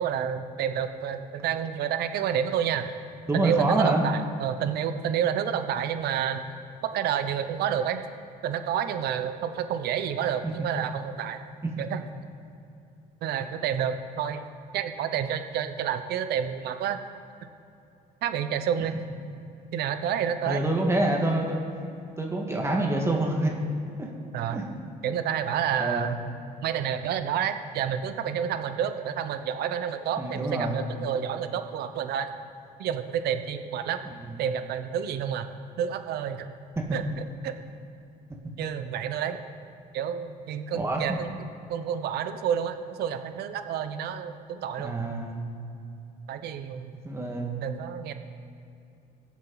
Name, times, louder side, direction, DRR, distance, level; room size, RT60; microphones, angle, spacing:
voice 1, 0.0-3.0 3.3-6.5 6.8-8.1 8.4-11.4 11.8-12.0 13.2-14.5 14.7-17.0 18.2-19.0 19.7-20.6 24.3-24.6 25.0-26.2 26.6-32.3 32.8-34.0 34.4-35.5 35.8-36.5 36.9-37.5 38.6-39.4 39.9-41.3 41.7-45.0 46.3-47.0 47.6-48.1, right 8 dB, 70° right, 9 dB, 0.8 m, -29 dB
voice 2, 3.3-4.0 20.5-21.6 22.2-23.5 24.0-24.1 24.5-24.6 25.8-26.1 30.2-30.8 36.8-36.9 40.7-41.0 44.8-45.3 47.0-47.6, right 2 dB, 15° right, 0 dB, 1.7 m, -26 dB
22.0 x 7.3 x 4.0 m, 2.6 s
cardioid pair, 110°, 17 cm